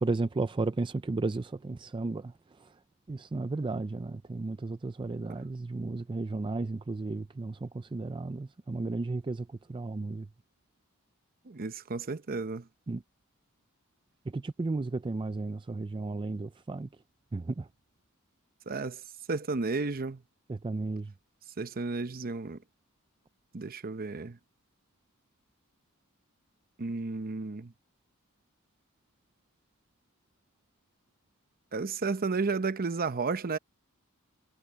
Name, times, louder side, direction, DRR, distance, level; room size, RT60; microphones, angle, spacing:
voice 1, 0.0-2.7 3.1-10.3 12.9-13.0 14.3-16.9 17.3-17.7 20.5-21.1, right 3 dB, 20° right, 0.4 m, -34 dB
voice 2, 11.5-12.7 18.7-19.0 19.3-20.2 21.6-22.6 23.5-24.4 26.8-27.7 31.7-33.6, right 4 dB, 45° right, 0.8 m, -32 dB
head